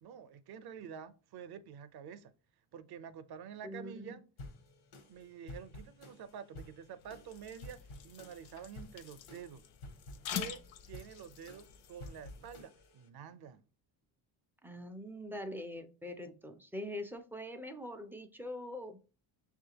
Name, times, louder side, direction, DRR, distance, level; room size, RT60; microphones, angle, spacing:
voice 1, 0.0-2.3 2.7-4.2 5.1-9.6 10.3-13.6, right 7 dB, 50° right, 0.6 m, -48 dB
voice 2, 3.6-4.2 14.6-19.1, left 1 dB, 5° right, 0.3 m, -43 dB
sound 1, 4.4-13.1, left 1 dB, 85° left, 1.1 m, -52 dB
sound 2, 7.0-12.6, left 9 dB, 65° left, 0.7 m, -46 dB
6.2 x 2.4 x 2.8 m
cardioid pair, 105°, 49 cm